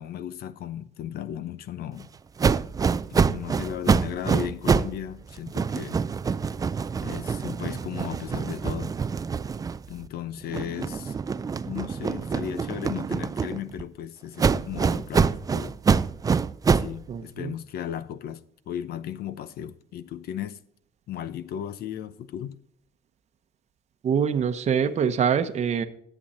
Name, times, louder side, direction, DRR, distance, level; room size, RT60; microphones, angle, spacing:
voice 1, 0.0-2.1 3.1-6.0 7.0-8.9 9.9-11.2 11.6-15.8 16.7-20.6 21.1-22.6, left 10 dB, 65° left, 0.7 m, -35 dB
sound 1, 2.4-5.0 5.3-10.1 10.5-13.8 14.4-17.0, right 5 dB, 20° right, 0.3 m, -25 dB
voice 2, 17.1-17.5 24.0-25.8, right 7 dB, 40° right, 0.9 m, -24 dB
11.5 x 7.8 x 4.2 m
cardioid pair, 110°, 17 cm